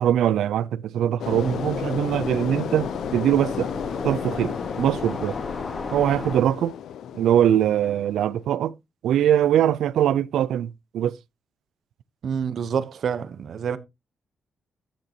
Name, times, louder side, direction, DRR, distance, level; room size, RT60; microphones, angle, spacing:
voice 1, 0.0-3.7 4.0-5.4 5.9-6.7 7.1-8.7 9.0-11.2, right 10 dB, 90° right, 0.4 m, -22 dB
sound 1, 1.2-8.4, left 9 dB, 85° left, 0.5 m, -33 dB
sound 2, 1.3-6.4, left 3 dB, 35° left, 2.2 m, -34 dB
voice 2, 12.2-13.8, right 7 dB, 65° right, 0.9 m, -27 dB
13.0 x 6.7 x 2.9 m
cardioid pair, 85°, 0 cm